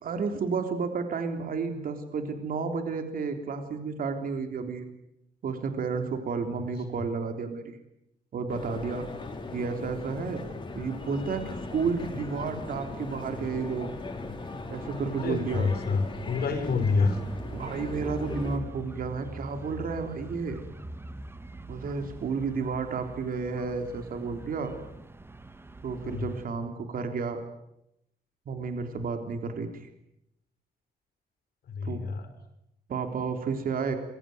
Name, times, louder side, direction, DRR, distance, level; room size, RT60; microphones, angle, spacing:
voice 1, 0.0-4.8 5.4-7.8 8.3-9.1 9.5-10.4 10.7-13.9 14.7-15.7 17.5-20.6 21.7-24.7 25.8-27.4 28.5-29.9 31.8-32.0 32.9-34.0, right 5 dB, 60° right, 6 dB, 3.6 m, -31 dB
sound 1, 8.5-18.6, left 3 dB, 30° left, 4.8 m, -39 dB
sound 2, 12.6-26.5, right 1 dB, 15° right, 1.4 m, -44 dB
voice 2, 15.2-17.2 26.0-26.3 31.7-32.3, left 4 dB, 70° left, 7 dB, 5.7 m, -27 dB
27.5 x 23.0 x 9.4 m, 0.83 s
wide cardioid pair, 140°, 17 cm